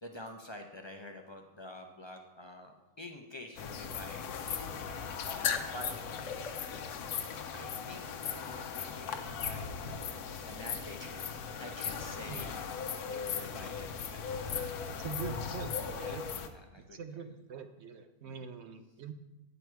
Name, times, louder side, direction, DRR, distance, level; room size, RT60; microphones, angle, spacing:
voice 1, 0.0-5.9 7.5-10.1 10.5-12.6 13.1-15.2 16.0-16.2 16.5-17.0 18.2-18.5, left 1 dB, 40° left, 3 dB, 0.4 m, -48 dB
sound 1, 3.6-16.5, left 6 dB, 90° left, 1.3 m, -38 dB
sound 2, 5.4-9.9, left 7 dB, 60° left, 0.9 m, -39 dB
voice 2, 12.3-12.6 15.0-16.3 16.8-19.1, right 6 dB, 60° right, 9 dB, 0.8 m, -43 dB
10.0 x 6.9 x 4.6 m, 1.0 s
omnidirectional pair, 1.6 m